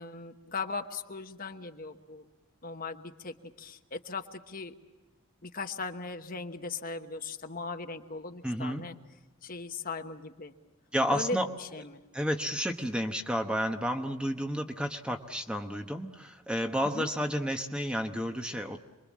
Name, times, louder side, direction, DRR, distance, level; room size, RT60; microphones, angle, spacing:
voice 1, 0.0-2.3 2.6-4.7 5.4-8.9 9.4-10.5 11.1-12.0 16.9-17.1, left 3 dB, 40° left, 6 dB, 1.2 m, -38 dB
voice 2, 8.4-8.9 10.9-11.5 12.1-18.8, equal, 5° right, 5 dB, 1.0 m, -31 dB
27.5 x 22.5 x 7.4 m, 1.2 s
head